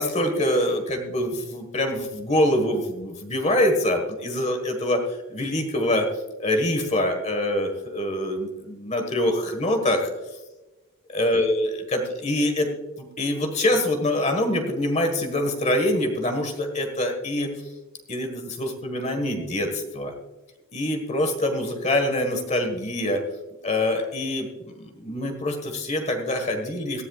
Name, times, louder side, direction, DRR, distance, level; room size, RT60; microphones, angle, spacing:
voice 1, 0.0-5.0 5.3-6.1 6.4-10.1 11.1-12.7 13.0-17.5 18.1-20.1 20.7-23.2 23.6-27.0, left 1 dB, 30° left, 5 dB, 1.5 m, -25 dB
18.0 x 13.5 x 2.4 m, 1.1 s
head